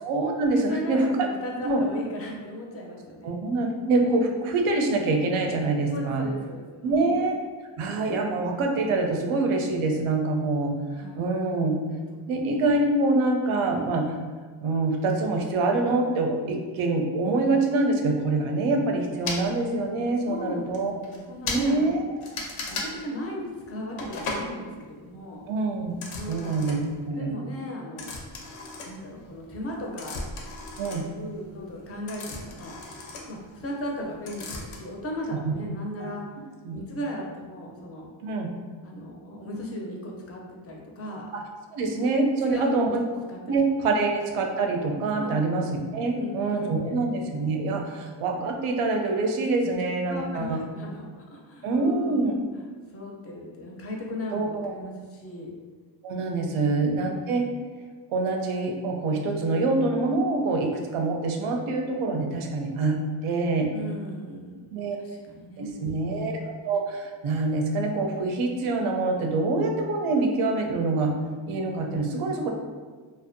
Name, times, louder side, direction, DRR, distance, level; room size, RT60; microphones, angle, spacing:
voice 1, 0.0-1.3 1.6-1.8 3.2-6.3 6.8-7.4 7.8-10.7 11.1-11.7 12.3-14.1 14.6-20.9 21.4-22.0 25.5-25.9 26.3-27.3 30.8-31.0 35.4-35.5 36.0-36.1 36.6-36.8 38.2-38.5 41.3-41.4 41.7-42.9 43.5-45.6 45.9-50.6 51.6-52.3 54.3-54.7 56.0-57.5 58.1-63.7 64.7-65.0 65.6-71.1 71.5-72.5, right 3 dB, 85° right, 2 dB, 0.5 m, -25 dB
voice 2, 0.5-3.4 5.9-7.2 10.9-11.6 11.9-12.5 20.3-21.9 22.7-25.4 26.1-26.8 27.1-28.2 28.8-30.3 30.8-32.8 33.3-36.2 36.7-38.1 38.8-41.3 42.2-43.0 43.3-43.6 43.8-44.0 45.2-45.5 46.1-47.0 49.6-49.8 50.1-52.3 52.9-55.5 63.7-65.9, equal, 30° left, -1 dB, 0.4 m, -37 dB
sound 1, 19.2-19.4 20.3-20.4 20.7-20.8 21.0-21.2 21.4-21.6 22.2-22.9 24.0-24.5 25.9-27.0 28.0-29.4 29.7-34.0 34.3-34.8, left 3 dB, 90° left, 0.6 m, -35 dB
2.5 x 2.1 x 2.5 m, 1.5 s
wide cardioid pair, 130°, 49 cm